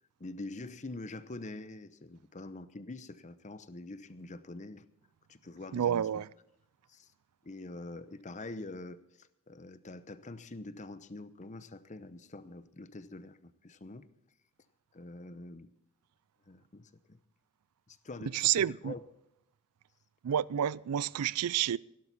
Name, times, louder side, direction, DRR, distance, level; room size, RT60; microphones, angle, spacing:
voice 1, 0.2-4.8 5.3-6.1 6.9-7.1 7.4-14.1 14.9-15.7 16.5-17.2 17.9-19.0, left 2 dB, 35° left, 0.7 m, -45 dB
voice 2, 5.7-6.3 18.3-18.9 20.2-21.8, right 10 dB, 90° right, 0.4 m, -29 dB
17.0 x 11.5 x 4.1 m
head